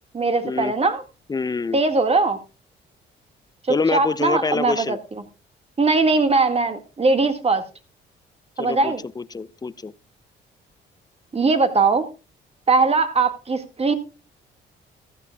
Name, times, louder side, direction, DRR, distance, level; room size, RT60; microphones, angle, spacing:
voice 1, 0.1-1.0 1.7-2.4 3.7-5.0 5.8-7.6 8.6-9.0 11.3-12.1 12.7-13.9, right 3 dB, 30° right, 1.9 m, -20 dB
voice 2, 1.3-1.8 3.7-5.0 8.6-9.9, left 4 dB, 20° left, 0.5 m, -26 dB
15.0 x 12.5 x 2.3 m
cardioid pair, 90°, 20 cm